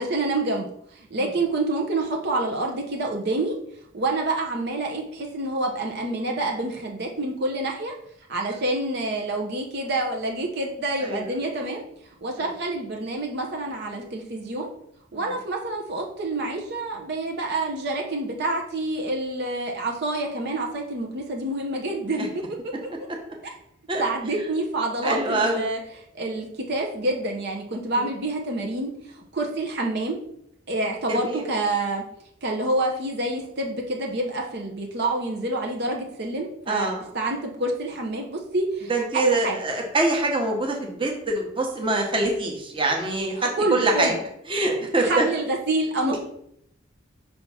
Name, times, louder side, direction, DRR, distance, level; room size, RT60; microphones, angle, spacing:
voice 1, 0.0-3.5 3.9-7.9 8.3-11.8 12.2-14.7 15.1-22.3 23.4-23.5 24.0-25.8 26.1-30.2 30.7-32.0 32.4-39.6 43.4-44.2 45.0-46.2, right 2 dB, 55° right, 1 dB, 0.8 m, -27 dB
voice 2, 25.0-25.7 27.9-28.1 31.1-31.4 36.7-37.0 38.9-44.1 44.5-45.3 46.0-46.2, right 2 dB, 25° right, 0 dB, 1.1 m, -25 dB
5.6 x 3.5 x 5.6 m, 0.73 s
head